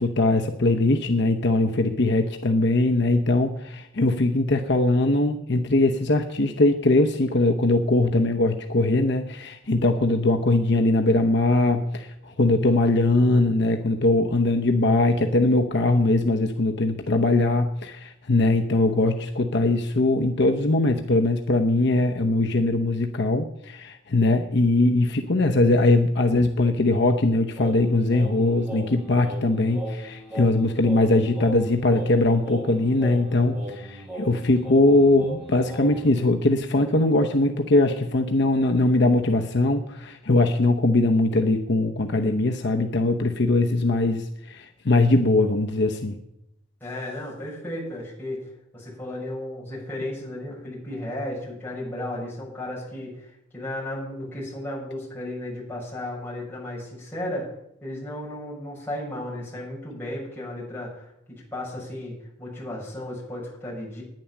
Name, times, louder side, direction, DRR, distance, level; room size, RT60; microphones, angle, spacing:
voice 1, 0.0-46.2, left 2 dB, 60° left, 4 dB, 0.8 m, -21 dB
Singing, 27.6-36.2, right 2 dB, 10° right, 5.4 m, -38 dB
voice 2, 46.8-57.4 57.8-61.1 61.5-64.0, left 1 dB, 10° left, -7 dB, 6.8 m, -34 dB
10.5 x 10.0 x 7.1 m, 0.82 s
head